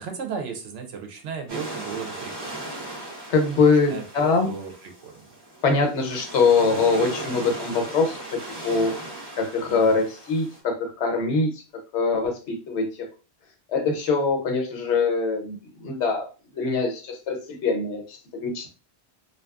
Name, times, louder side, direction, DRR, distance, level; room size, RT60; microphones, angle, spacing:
voice 1, 0.0-2.6 3.9-5.2 9.7-10.0, right 6 dB, 70° right, 5 dB, 0.9 m, -35 dB
sound 1, 1.5-10.6, right 1 dB, 25° right, 0.9 m, -37 dB
voice 2, 3.3-4.5 5.6-8.2 8.6-8.9 9.4-11.6 11.9-13.1 13.7-18.7, left 4 dB, 90° left, 4 dB, 1.0 m, -23 dB
2.6 x 2.3 x 2.3 m, 0.34 s
omnidirectional pair, 1.1 m